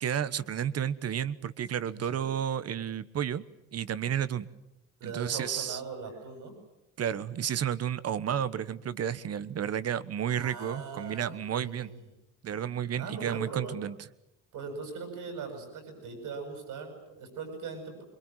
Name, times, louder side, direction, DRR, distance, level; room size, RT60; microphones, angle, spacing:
voice 1, 0.0-3.4 3.7-4.5 5.0-5.8 7.0-11.9 12.4-14.0, right 9 dB, 50° right, 16 dB, 1.3 m, -32 dB
voice 2, 1.9-2.3 5.0-6.5 10.3-11.9 12.9-13.8 14.5-18.0, right 4 dB, 70° right, 6 dB, 7.9 m, -40 dB
25.5 x 22.5 x 9.2 m, 0.89 s
cardioid pair, 95°, 32 cm